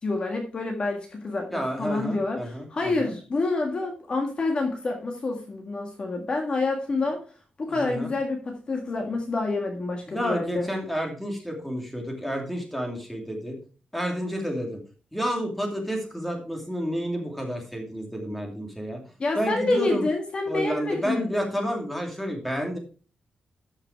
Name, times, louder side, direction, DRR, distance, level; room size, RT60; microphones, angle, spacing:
voice 1, 0.0-7.2 7.6-10.7 19.2-21.4, left 3 dB, 35° left, 2 dB, 1.7 m, -28 dB
voice 2, 1.5-3.1 7.7-8.1 10.1-13.6 13.9-14.8 15.1-19.0 19.4-20.1 20.5-22.8, equal, 5° left, 2 dB, 2.5 m, -30 dB
12.5 x 5.8 x 4.6 m, 0.37 s
wide cardioid pair, 155°, 3 cm